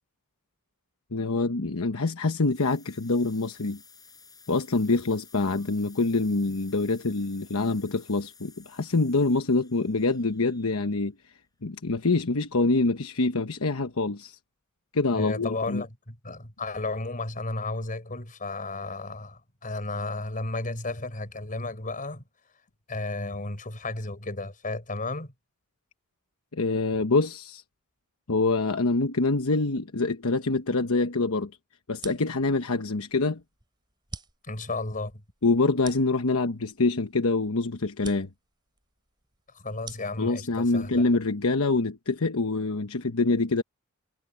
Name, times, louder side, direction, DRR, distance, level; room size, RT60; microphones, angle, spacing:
voice 1, 1.1-3.8 4.5-11.1 11.6-14.4 14.9-15.8 26.5-27.6 28.3-31.5 31.9-33.4 35.4-38.3 40.2-43.6, left 3 dB, 70° left, 1.1 m, -25 dB
sound 1, 2.3-11.2, left 5 dB, 15° left, 7.7 m, -55 dB
voice 2, 15.1-22.2 22.9-25.3 34.4-35.2 39.5-41.0, left 2 dB, 40° left, 4.5 m, -33 dB
sound 2, 31.9-41.8, right 3 dB, 20° right, 2.7 m, -48 dB
head